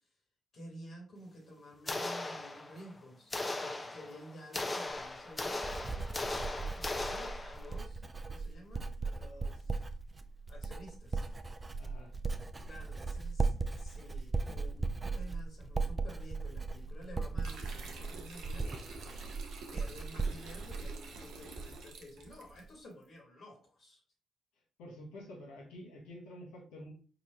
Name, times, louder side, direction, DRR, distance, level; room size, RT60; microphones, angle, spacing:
voice 1, 0.5-9.9 10.5-11.3 12.6-14.9 15.1-18.8 19.7-24.0, equal, 65° left, 0 dB, 1.5 m, -52 dB
sound 1, 1.9-2.9 3.3-7.8, left 2 dB, 25° left, 0.5 m, -38 dB
Writing, 4.9-21.9 22.2-22.7, right 3 dB, 30° right, 0.4 m, -38 dB
voice 2, 11.8-12.1 24.8-26.9, left 1 dB, 85° left, -2 dB, 1.1 m, -49 dB
sound 2, 17.4-22.6, right 3 dB, 75° right, 0.7 m, -49 dB
4.0 x 2.4 x 3.3 m, 0.39 s
supercardioid pair, 55°, 0 cm